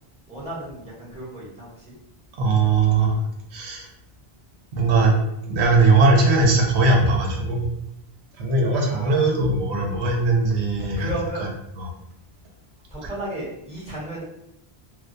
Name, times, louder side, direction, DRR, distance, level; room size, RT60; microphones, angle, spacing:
voice 1, 0.3-1.9 8.9-9.3 11.0-11.5 12.9-14.2, right 1 dB, 5° right, -8 dB, 0.8 m, -34 dB
voice 2, 2.4-3.2 3.5-3.9 4.8-5.2 5.5-7.6 8.4-11.1 11.8-11.9, right 3 dB, 85° right, 0 dB, 0.9 m, -19 dB
2.2 x 2.2 x 2.5 m, 0.80 s
omnidirectional pair, 1.1 m